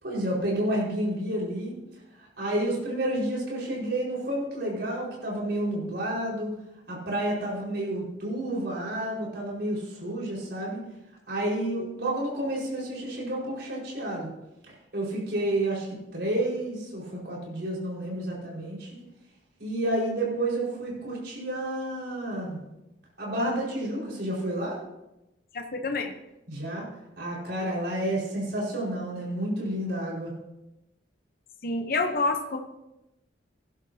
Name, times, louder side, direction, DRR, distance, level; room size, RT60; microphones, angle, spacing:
voice 1, 0.0-1.7 2.4-6.5 6.9-10.8 11.3-14.3 14.9-19.0 19.6-22.6 23.2-24.8 26.5-26.8 27.2-30.3, right 1 dB, 60° right, -4 dB, 5.1 m, -30 dB
voice 2, 25.5-26.1 31.6-32.6, left 3 dB, 50° left, 5 dB, 0.9 m, -28 dB
17.0 x 11.0 x 2.9 m, 0.94 s
head